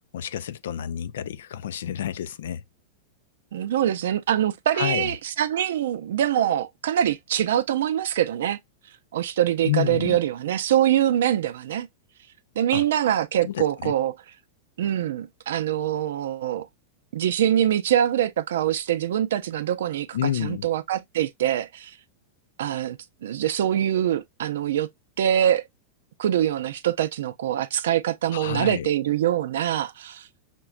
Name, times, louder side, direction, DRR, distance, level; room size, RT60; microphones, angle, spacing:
voice 1, 0.1-2.6 4.7-5.1 9.6-10.2 12.7-12.8 13.4-13.9 20.1-20.7 28.3-28.9, left 11 dB, 85° left, 0.4 m, -29 dB
voice 2, 3.5-8.6 9.1-11.9 12.6-14.1 14.8-16.7 17.1-22.0 22.6-24.9 25.2-25.6 26.2-30.3, right 11 dB, 80° right, 0.5 m, -24 dB
5.8 x 2.2 x 2.4 m
supercardioid pair, 160°, 0 cm